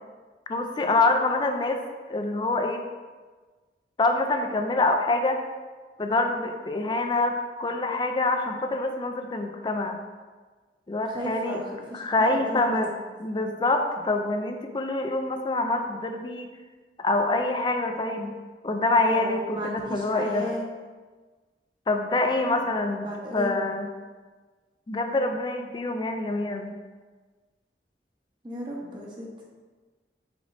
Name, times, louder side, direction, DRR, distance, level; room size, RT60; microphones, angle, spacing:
voice 1, 0.5-1.8 2.1-2.8 4.0-5.4 6.0-10.0 10.9-11.6 11.9-12.9 13.2-16.5 17.0-18.4 18.6-20.5 21.9-23.1 23.3-23.9 24.9-26.7, left 2 dB, 25° left, 5 dB, 0.3 m, -25 dB
voice 2, 11.1-12.8 13.3-13.4 19.1-20.6 22.5-22.7 23.0-23.6 28.4-29.3, equal, 25° right, -3 dB, 0.8 m, -35 dB
5.0 x 4.1 x 2.6 m, 1.4 s
head